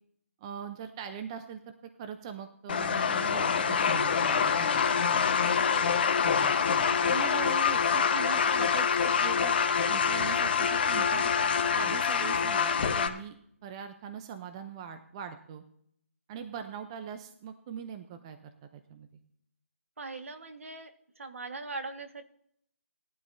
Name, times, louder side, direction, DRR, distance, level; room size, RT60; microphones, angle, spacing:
voice 1, 0.4-1.7 2.0-5.2 6.2-9.5 9.9-11.3 11.7-13.4 13.6-15.6 16.3-19.1, right 7 dB, 20° right, 8 dB, 0.7 m, -41 dB
sound 1, 2.7-13.1, left 6 dB, 40° left, 1.2 m, -26 dB
voice 2, 20.0-20.9 21.2-22.3, right 3 dB, 65° right, 7 dB, 1.6 m, -40 dB
19.0 x 12.0 x 2.8 m, 0.69 s
hypercardioid pair, 165°, 8 cm